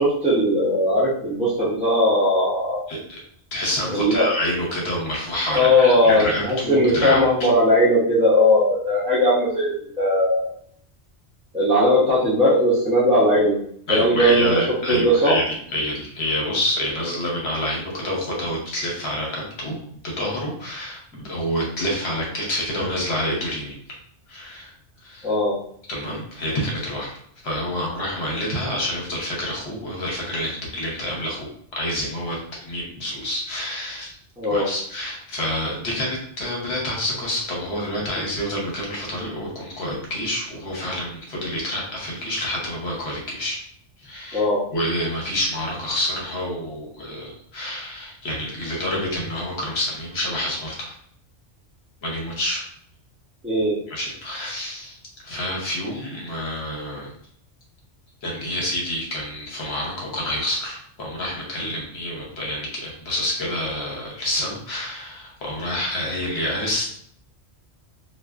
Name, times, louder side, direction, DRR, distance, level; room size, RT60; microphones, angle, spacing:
voice 1, 0.0-2.8 3.9-4.3 5.5-10.5 11.5-13.6 13.9-15.3 25.2-25.5 34.4-34.7 44.3-44.6 53.4-53.7, equal, 10° right, -8 dB, 0.4 m, -19 dB
voice 2, 2.9-3.2 3.5-7.5 13.9-15.4 15.7-19.8 20.0-23.8 24.3-24.7 25.0-25.3 25.9-27.1 27.4-34.2 34.5-43.6 44.0-44.4 44.7-50.9 52.0-52.7 53.9-55.0 55.2-57.1 58.2-66.8, left 1 dB, 65° left, -3 dB, 1.0 m, -28 dB
2.4 x 2.3 x 2.3 m, 0.64 s
omnidirectional pair, 1.2 m